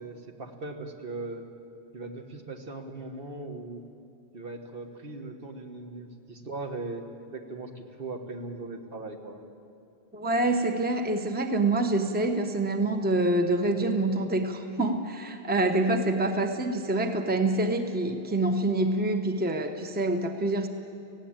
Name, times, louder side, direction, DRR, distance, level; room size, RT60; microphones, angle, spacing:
voice 1, 0.0-1.4 1.9-3.8 4.3-7.0 7.3-9.4, right 3 dB, 60° right, 4 dB, 1.6 m, -39 dB
voice 2, 10.1-20.7, right 2 dB, 10° right, 6 dB, 0.9 m, -26 dB
18.5 x 16.0 x 8.8 m, 2.6 s
omnidirectional pair, 1.1 m